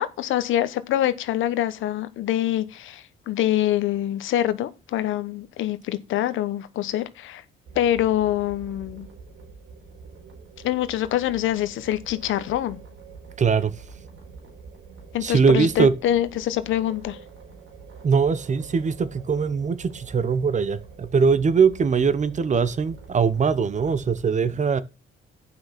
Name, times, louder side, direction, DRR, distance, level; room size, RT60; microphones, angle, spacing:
voice 1, 0.0-7.4 7.7-9.1 10.6-12.8 15.1-17.2, left 12 dB, 80° left, 0.9 m, -25 dB
sound 1, 7.6-24.2, right 5 dB, 75° right, 3.8 m, -45 dB
voice 2, 13.4-13.7 15.2-15.9 18.0-24.8, right 5 dB, 35° right, 0.8 m, -21 dB
7.7 x 5.8 x 5.9 m
cardioid pair, 90°, 20 cm